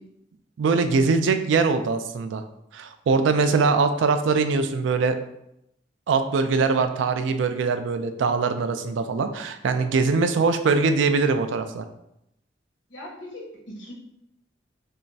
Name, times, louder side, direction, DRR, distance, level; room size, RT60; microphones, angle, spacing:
voice 1, 0.6-2.4 2.7-5.2 6.1-11.8, right 4 dB, 75° right, 9 dB, 0.3 m, -22 dB
voice 2, 12.9-13.9, left 1 dB, 80° left, -2 dB, 1.1 m, -40 dB
5.4 x 2.0 x 2.7 m, 0.80 s
head